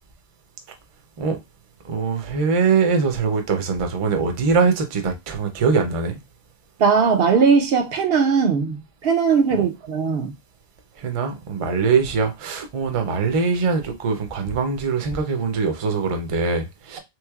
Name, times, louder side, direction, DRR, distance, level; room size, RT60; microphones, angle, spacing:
voice 1, 1.8-6.2 9.5-9.6 11.0-17.0, right 5 dB, 40° right, 0.6 m, -22 dB
voice 2, 6.8-10.3, right 5 dB, 70° right, 0.8 m, -19 dB
3.5 x 3.1 x 2.3 m
omnidirectional pair, 1.1 m